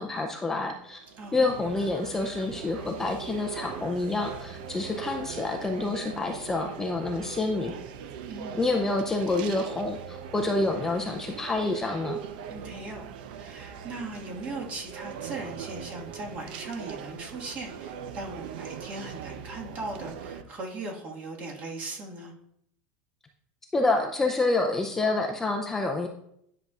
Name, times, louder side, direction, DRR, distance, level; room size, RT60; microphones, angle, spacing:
voice 1, 0.0-1.0 1.3-7.8 8.6-12.2 23.7-26.1, left 2 dB, 10° left, 2 dB, 0.4 m, -28 dB
sound 1, 0.7-20.4, right 7 dB, 70° right, 0.7 m, -40 dB
voice 2, 1.2-1.6 8.2-8.6 12.5-13.1 13.3-22.3, right 2 dB, 30° right, -1 dB, 1.6 m, -39 dB
10.5 x 6.6 x 2.4 m, 0.73 s
supercardioid pair, 165°, 5 cm